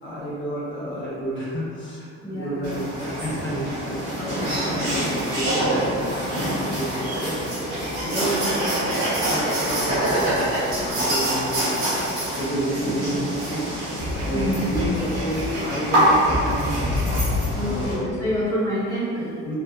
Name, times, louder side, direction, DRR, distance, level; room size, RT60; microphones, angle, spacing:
voice 1, 0.0-6.3 6.6-8.4 8.6-11.7 12.1-13.7 14.2-16.9 17.6-18.1 19.4-19.5, right 1 dB, 35° left, -8 dB, 1.2 m, -31 dB
voice 2, 2.2-2.7 6.1-6.6 7.7-8.8 13.1-13.2 14.3-14.9 17.5-19.3, equal, 10° left, -10 dB, 0.9 m, -29 dB
sound 1, 2.6-17.9, equal, 85° right, 1.2 m, -25 dB
3.3 x 2.2 x 2.5 m, 2.4 s
hypercardioid pair, 50°, 35 cm